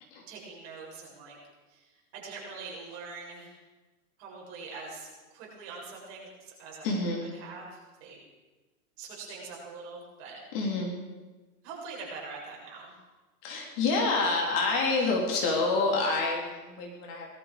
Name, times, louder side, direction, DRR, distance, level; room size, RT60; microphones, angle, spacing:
voice 1, 0.3-1.4 1.7-1.8 2.1-3.5 4.2-5.1 5.3-6.3 6.6-6.9 7.3-8.2 9.0-10.4 11.6-12.9, right 4 dB, 40° right, -3 dB, 7.3 m, -43 dB
voice 2, 6.8-7.2 10.5-10.9 13.4-17.3, left 3 dB, 35° left, 0 dB, 3.6 m, -27 dB
20.0 x 13.0 x 5.1 m, 1.2 s
hypercardioid pair, 145°, 46 cm